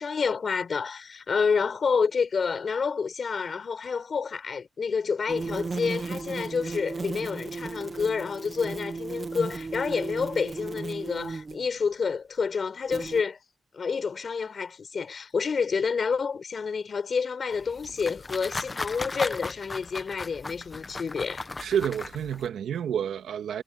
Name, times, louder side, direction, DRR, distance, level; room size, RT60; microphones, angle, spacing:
voice 1, 0.0-13.4 13.7-21.4, left 5 dB, 55° left, 4.5 m, -29 dB
sound 1, 5.3-11.7 12.9-13.2, right 4 dB, 40° right, 1.0 m, -35 dB
sound 2, 17.5-22.5, left 3 dB, 30° left, 1.2 m, -36 dB
voice 2, 21.6-23.6, right 9 dB, 80° right, 2.1 m, -29 dB
cardioid pair, 65°, 0 cm